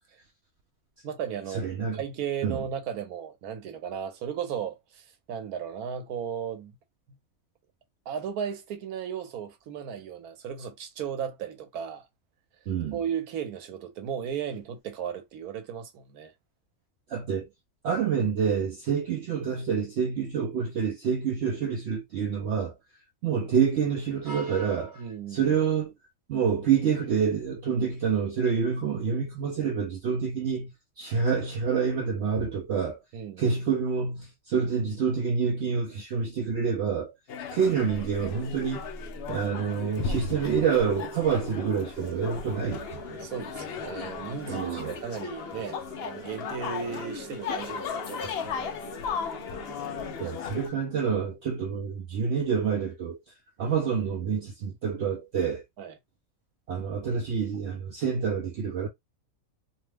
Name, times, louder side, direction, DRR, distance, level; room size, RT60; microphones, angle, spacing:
voice 1, 1.0-6.7 7.1-7.2 8.1-12.1 12.9-16.3 25.0-25.6 33.1-33.6 43.2-48.8 55.8-56.0, right 8 dB, 90° right, 1.2 m, -35 dB
voice 2, 1.5-2.0 2.4-2.6 12.7-13.0 17.1-17.5 17.8-22.7 23.2-25.0 25.3-25.9 26.3-33.0 33.4-37.1 37.5-38.9 39.3-43.0 44.5-45.0 50.2-53.2 53.6-55.6 56.7-58.9, right 6 dB, 65° right, 0.7 m, -27 dB
sound 1, 37.3-50.7, left 6 dB, 65° left, 0.6 m, -36 dB
sound 2, 42.0-50.2, right 3 dB, 50° right, 1.0 m, -45 dB
2.7 x 2.1 x 3.2 m
omnidirectional pair, 1.5 m